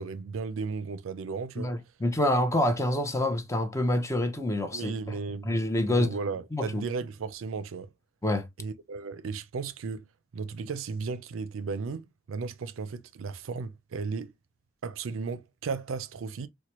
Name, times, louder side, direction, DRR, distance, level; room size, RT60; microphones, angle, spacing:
voice 1, 0.0-1.7 4.7-5.6 5.9-7.9 8.6-10.1 10.3-14.3 14.8-16.5, right 4 dB, 80° right, 0.4 m, -35 dB
voice 2, 1.6-4.9 5.5-6.1 6.5-6.8 8.2-8.5, left 1 dB, 15° left, 0.6 m, -27 dB
4.5 x 2.2 x 2.9 m
head